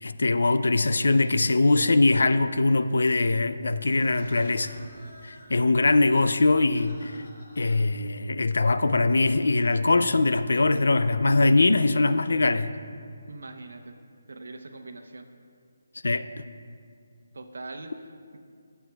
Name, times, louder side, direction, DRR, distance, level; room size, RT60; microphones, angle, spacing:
voice 1, 0.0-4.8 5.2-7.3 7.6-12.7 16.0-16.3, left 2 dB, 90° left, 12 dB, 0.4 m, -22 dB
sound 1, 3.9-9.0, equal, 35° left, 1.7 m, -51 dB
voice 2, 13.3-14.0 14.3-15.3 17.3-18.4, right 2 dB, 70° right, 6 dB, 0.8 m, -42 dB
19.0 x 8.0 x 2.3 m, 2.3 s
hypercardioid pair, 180°, 0 cm